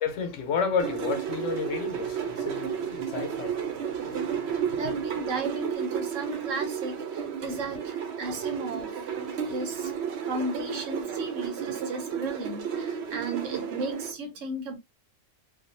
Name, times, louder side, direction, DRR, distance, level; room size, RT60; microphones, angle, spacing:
voice 1, 0.0-4.8, left 5 dB, 80° left, 1.0 m, -32 dB
sound 1, 0.8-14.1, right 7 dB, 65° right, 0.8 m, -32 dB
voice 2, 4.8-9.0 9.4-9.9 10.2-14.8, right 2 dB, 85° right, 1.1 m, -35 dB
2.5 x 2.3 x 2.5 m
omnidirectional pair, 1.3 m